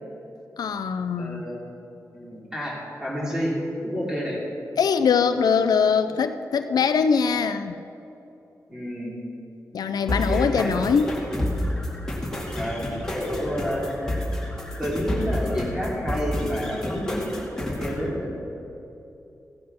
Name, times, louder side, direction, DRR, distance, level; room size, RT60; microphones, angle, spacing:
voice 1, 0.6-1.5 4.8-7.8 9.7-11.1, left 6 dB, 85° left, 10 dB, 0.5 m, -22 dB
voice 2, 1.2-1.6 2.1-3.5 3.8-4.4 8.7-9.1 10.1-10.9 12.5-14.2 14.8-18.6, equal, 10° right, -5 dB, 3.2 m, -30 dB
sound 1, 10.1-18.1, left 1 dB, 10° left, 2.2 m, -29 dB
15.5 x 7.5 x 5.9 m, 2.9 s
wide cardioid pair, 135°, 6 cm